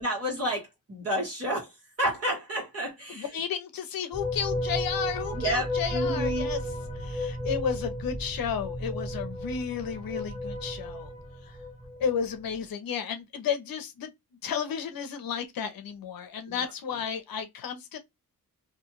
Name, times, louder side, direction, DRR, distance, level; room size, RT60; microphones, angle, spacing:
voice 1, 0.0-1.7 2.0-3.3 5.3-6.5, equal, 40° right, 1.4 m, -30 dB
voice 2, 3.1-11.1 11.4-11.6 12.0-14.1 14.4-18.0, left 7 dB, 70° left, 0.7 m, -33 dB
sound 1, 4.1-12.2, left 1 dB, 25° right, 1.9 m, -33 dB
2.7 x 2.3 x 3.0 m
cardioid pair, 110°, 36 cm